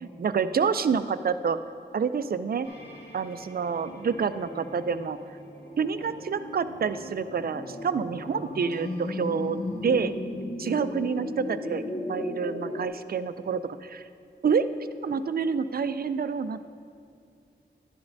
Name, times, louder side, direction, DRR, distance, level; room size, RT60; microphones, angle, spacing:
voice 1, 0.2-1.6 1.9-2.7 3.1-5.2 5.8-10.1 10.6-14.0 14.4-14.7 15.0-16.7, right 6 dB, 55° right, 12 dB, 0.4 m, -28 dB
sound 1, 2.6-10.1, equal, 60° left, 1.4 m, -44 dB
sound 2, 7.3-12.9, left 2 dB, 40° left, 0.7 m, -35 dB
11.5 x 10.5 x 2.6 m, 2.4 s
wide cardioid pair, 95°, 19 cm